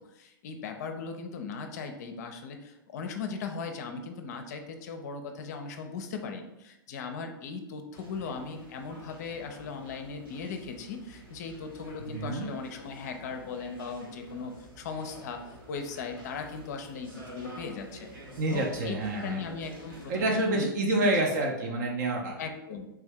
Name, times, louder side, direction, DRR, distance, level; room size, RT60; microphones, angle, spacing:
voice 1, 0.1-18.1 18.5-20.7 21.3-21.4 22.4-22.9, left 5 dB, 50° left, 6 dB, 0.5 m, -38 dB
sound 1, 7.9-20.5, equal, 75° right, 1.2 m, -49 dB
voice 2, 12.0-12.5 18.4-19.4 20.1-22.4, right 1 dB, 50° right, 0 dB, 0.6 m, -28 dB
3.4 x 2.6 x 3.3 m, 0.92 s
figure-of-eight pair, 105°, 12 cm